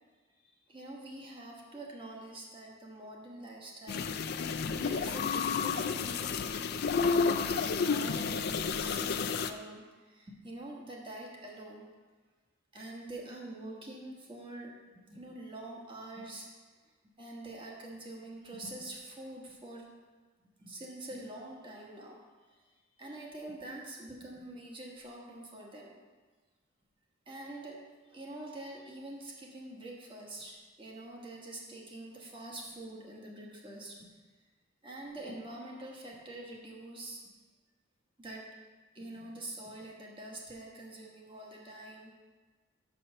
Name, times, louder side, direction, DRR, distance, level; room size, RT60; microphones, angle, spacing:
voice 1, 0.7-6.9 7.4-11.9 12.7-14.7 15.1-16.5 17.2-19.8 20.6-22.2 22.5-22.7 23.0-25.9 27.3-27.8 28.1-34.1 34.8-37.2 38.2-38.4 38.9-42.1, right 1 dB, 25° right, -2 dB, 1.4 m, -45 dB
sound 1, 3.9-9.5, left 5 dB, 50° left, 0.4 m, -31 dB
6.2 x 5.6 x 6.5 m, 1.3 s
head